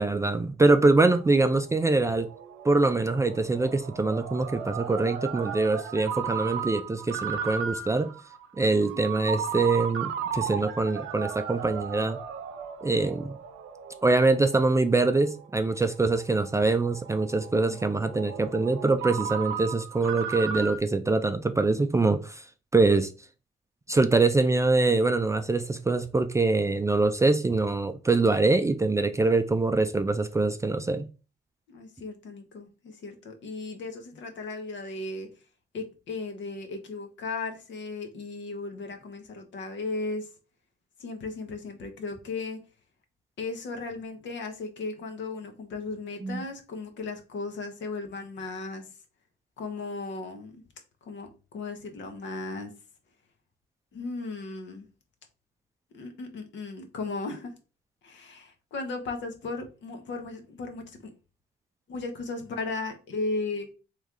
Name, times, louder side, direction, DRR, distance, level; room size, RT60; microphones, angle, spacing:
voice 1, 0.0-2.3 2.6-8.1 8.6-12.2 12.8-13.3 14.0-22.4 22.7-23.1 23.9-31.1 46.2-46.4, right 3 dB, 15° right, 0.4 m, -24 dB
Ringtone, 1.2-20.8, right 7 dB, 80° right, 0.6 m, -36 dB
voice 2, 8.6-9.0 17.6-17.8 31.7-35.3 35.7-40.3 41.0-42.6 43.4-48.8 49.6-50.6 51.0-52.7 53.9-54.8 55.9-57.5 58.0-61.1 61.9-63.7, left 3 dB, 65° left, 1.1 m, -36 dB
3.3 x 3.1 x 3.7 m
cardioid pair, 90°, 20 cm